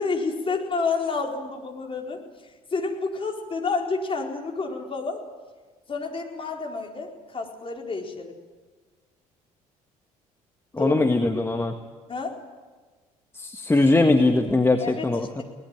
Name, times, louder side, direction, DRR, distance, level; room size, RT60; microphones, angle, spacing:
voice 1, 0.0-5.2 5.9-8.3 10.7-10.9 12.1-12.4 14.8-15.1, left 4 dB, 30° left, 1 dB, 4.4 m, -29 dB
voice 2, 10.7-11.7 13.3-15.4, left 2 dB, 10° left, 5 dB, 1.6 m, -21 dB
22.0 x 18.5 x 9.1 m, 1.4 s
figure-of-eight pair, 55°, 19 cm